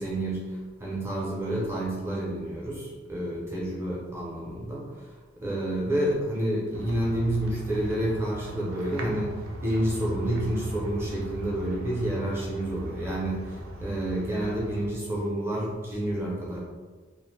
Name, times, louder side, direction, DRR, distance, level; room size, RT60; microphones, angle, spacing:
voice 1, 0.0-5.1 5.4-16.6, right 1 dB, 10° right, -5 dB, 0.5 m, -29 dB
sound 1, 6.7-14.9, equal, 85° right, 0.4 m, -39 dB
2.5 x 2.1 x 3.2 m, 1.4 s
head